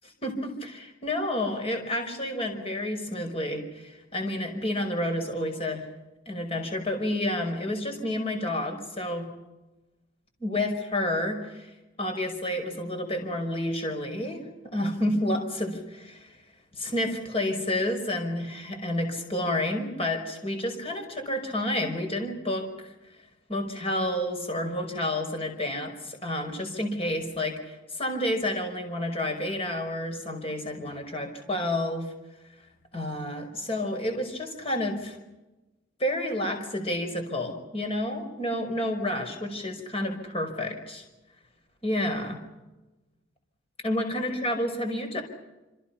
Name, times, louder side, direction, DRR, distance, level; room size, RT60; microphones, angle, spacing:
voice 1, 0.2-5.9 6.3-9.3 10.4-11.7 12.0-14.4 14.7-16.3 16.7-22.9 23.5-32.1 32.9-35.2 36.0-41.0 41.8-42.4 43.8-45.2, left 1 dB, 30° left, 5 dB, 5.4 m, -30 dB
28.0 x 27.0 x 5.9 m, 1.1 s
head